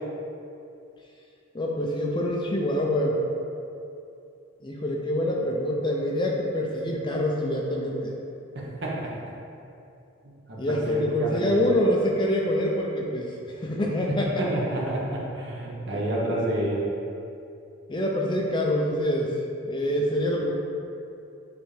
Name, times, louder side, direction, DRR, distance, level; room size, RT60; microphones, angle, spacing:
voice 1, 1.5-3.1 4.6-8.1 10.6-13.3 13.6-14.4 15.9-16.0 17.9-19.3 19.6-20.5, left 1 dB, 20° left, -1 dB, 0.5 m, -25 dB
voice 2, 8.5-9.1 10.5-11.6 14.4-16.8, right 1 dB, 55° right, -4 dB, 1.1 m, -29 dB
8.8 x 3.4 x 3.4 m, 2.6 s
head